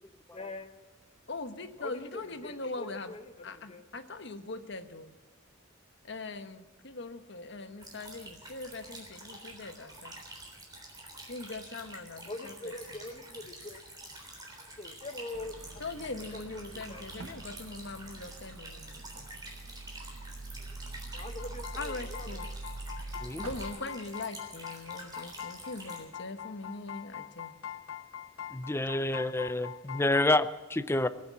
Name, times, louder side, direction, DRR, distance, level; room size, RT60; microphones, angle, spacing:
voice 1, 0.3-0.7 1.8-3.8 12.3-13.8 14.8-15.8 16.3-17.0 20.6-20.7 21.1-22.3, left 2 dB, 30° left, 7 dB, 1.1 m, -43 dB
voice 2, 1.3-3.1 3.4-5.1 6.0-10.1 11.3-12.7 15.8-19.3 21.7-22.5 23.4-27.5, left 3 dB, 60° left, 9 dB, 1.1 m, -41 dB
sound 1, 7.8-26.0, right 2 dB, 20° right, 3.5 m, -48 dB
sound 2, 15.3-23.7, right 2 dB, 90° right, 1.3 m, -44 dB
sound 3, 21.2-30.3, left 10 dB, 80° left, 0.8 m, -44 dB
voice 3, 28.5-31.1, left 2 dB, 10° left, 13 dB, 0.5 m, -28 dB
20.0 x 8.7 x 8.3 m, 1.3 s
head